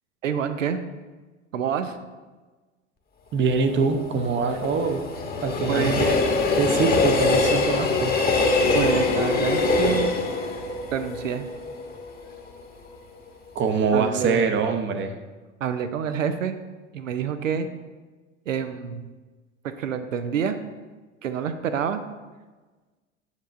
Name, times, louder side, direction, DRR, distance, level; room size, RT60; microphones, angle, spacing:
voice 1, 0.2-0.8 1.5-2.0 5.7-6.0 8.7-10.1 10.9-11.5 13.9-14.5 15.6-16.6 16.9-17.7 18.5-19.1 19.6-20.6 21.2-22.0, right 7 dB, 90° right, 10 dB, 0.6 m, -27 dB
voice 2, 3.3-5.0 5.4-6.2 6.5-8.1 13.5-15.1, right 5 dB, 30° right, 7 dB, 0.7 m, -24 dB
Train, 3.4-12.5 12.9-13.0, left 3 dB, 25° left, 1.0 m, -24 dB
8.1 x 6.7 x 2.6 m, 1.3 s
hypercardioid pair, 80°, 38 cm